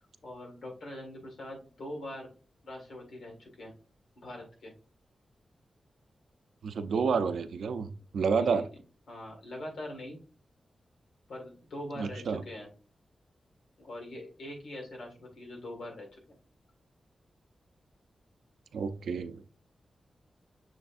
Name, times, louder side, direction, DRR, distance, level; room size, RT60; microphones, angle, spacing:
voice 1, 0.2-2.3 2.6-3.7 4.1-4.7 7.8-8.0 8.3-8.7 9.1-10.2 11.3-12.7 13.8-16.4, left 1 dB, 85° left, 1 dB, 1.6 m, -43 dB
voice 2, 6.6-8.7 12.0-12.4 18.7-19.4, right 5 dB, 90° right, 11 dB, 0.4 m, -30 dB
6.4 x 3.4 x 2.4 m, 0.38 s
wide cardioid pair, 135°, 0 cm